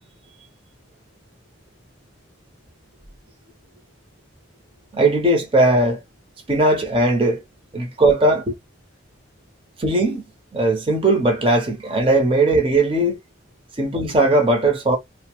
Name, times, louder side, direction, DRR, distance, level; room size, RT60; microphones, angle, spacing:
voice 1, 4.9-6.0 6.5-7.4 7.7-8.5 9.8-10.2 10.5-13.2 13.8-15.0, right 2 dB, 30° right, 0.7 m, -18 dB
2.7 x 2.1 x 3.0 m
head